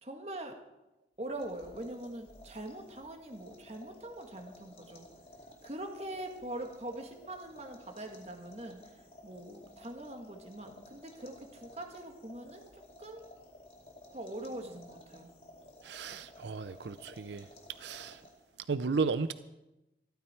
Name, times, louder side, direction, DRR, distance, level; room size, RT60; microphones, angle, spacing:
voice 1, 0.0-0.6 1.2-5.1 5.6-8.9 9.2-13.3 14.1-15.3, right 1 dB, 35° right, 1.8 m, -43 dB
sound 1, 1.2-18.6, left 1 dB, 30° left, 2.4 m, -55 dB
voice 2, 15.8-17.5 17.8-18.2 18.7-19.3, right 4 dB, 85° right, 0.5 m, -34 dB
15.5 x 14.0 x 4.5 m
head